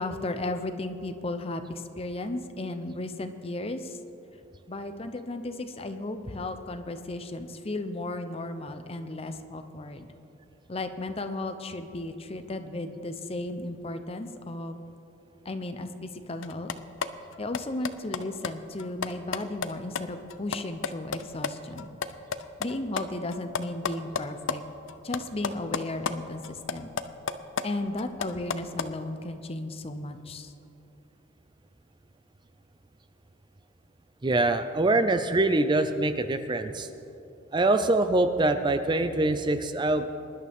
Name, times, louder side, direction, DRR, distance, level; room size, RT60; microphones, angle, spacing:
voice 1, 0.0-4.0 4.7-10.1 10.7-14.8 15.4-16.7 17.4-21.9 22.6-24.6 25.0-26.9 27.6-30.5, left 2 dB, 30° left, 8 dB, 0.7 m, -35 dB
sound 1, 16.4-21.5 21.8-24.6 24.9-26.1 26.4-28.9, left 6 dB, 90° left, 0.6 m, -32 dB
voice 2, 34.2-36.9 37.5-40.1, right 2 dB, 25° right, 10 dB, 0.5 m, -24 dB
23.0 x 11.0 x 3.6 m, 2.8 s
head